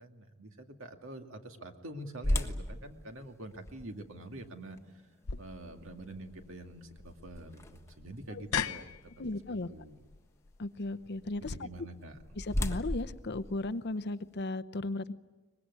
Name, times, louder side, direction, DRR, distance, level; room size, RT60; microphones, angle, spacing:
voice 1, 0.0-4.8 5.4-9.1 9.7-10.0 11.4-12.2, right 1 dB, 65° right, 5 dB, 2.3 m, -46 dB
sound 1, 2.2-8.2 8.7-8.8 9.4-9.7 11.7-14.4, left 1 dB, 15° left, 1.4 m, -37 dB
sound 2, 5.2-11.6, left 7 dB, 85° left, 0.8 m, -41 dB
voice 2, 9.2-9.7 10.6-11.7 12.4-15.1, left 2 dB, 50° left, 12 dB, 0.8 m, -36 dB
23.5 x 20.5 x 9.6 m, 1.2 s
head